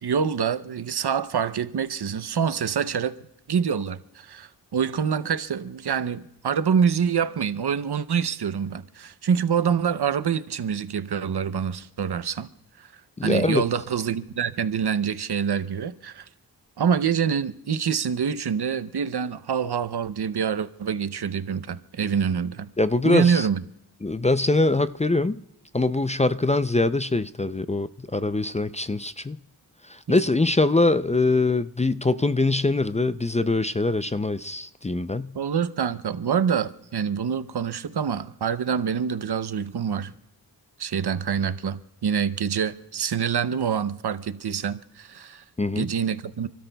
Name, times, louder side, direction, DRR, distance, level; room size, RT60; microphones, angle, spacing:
voice 1, 0.0-3.2 3.5-12.5 12.8-12.9 13.2-16.3 16.8-22.7 23.0-23.6 30.1-30.2 35.3-40.1 40.8-45.4 45.8-46.5, right 7 dB, 75° right, 0.7 m, -26 dB
voice 2, 13.2-13.6 22.8-23.5 24.0-25.4 25.7-27.9 28.1-29.4 30.1-35.3 45.6-45.9, left 2 dB, 20° left, 0.4 m, -23 dB
29.5 x 13.0 x 2.3 m
cardioid pair, 45°, 39 cm